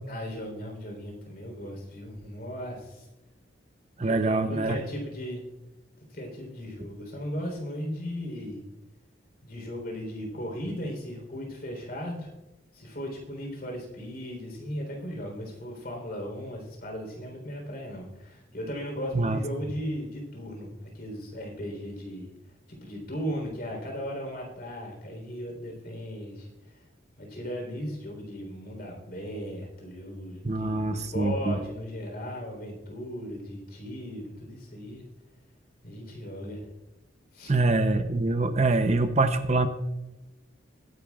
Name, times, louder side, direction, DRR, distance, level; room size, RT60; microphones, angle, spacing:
voice 1, 0.1-3.1 4.0-5.4 6.1-8.6 9.4-12.3 12.7-22.3 22.7-26.9 27.2-35.0 35.8-36.7 37.3-37.5, equal, 50° left, 1 dB, 3.7 m, -37 dB
voice 2, 4.0-4.8 19.1-19.4 30.4-31.6 37.5-39.7, right 2 dB, 35° right, 8 dB, 0.7 m, -24 dB
22.0 x 10.5 x 2.4 m, 1.0 s
head